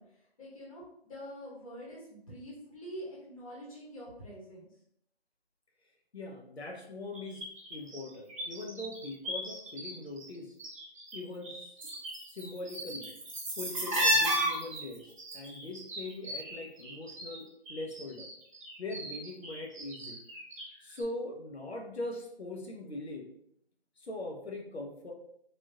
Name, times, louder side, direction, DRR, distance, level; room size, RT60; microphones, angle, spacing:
voice 1, 0.0-4.7, equal, 35° left, -6 dB, 1.1 m, -46 dB
voice 2, 6.1-10.5 11.1-11.7 12.3-13.1 13.6-18.3 18.8-20.2 20.8-23.3 24.0-25.1, left 2 dB, 90° left, 1 dB, 0.8 m, -41 dB
sound 1, 7.1-9.9 10.2-11.2 11.4-17.4 17.7-20.7 21.0-21.1, equal, 35° right, 0.7 m, -34 dB
3.4 x 2.5 x 2.7 m, 0.71 s
figure-of-eight pair, 155°, 31 cm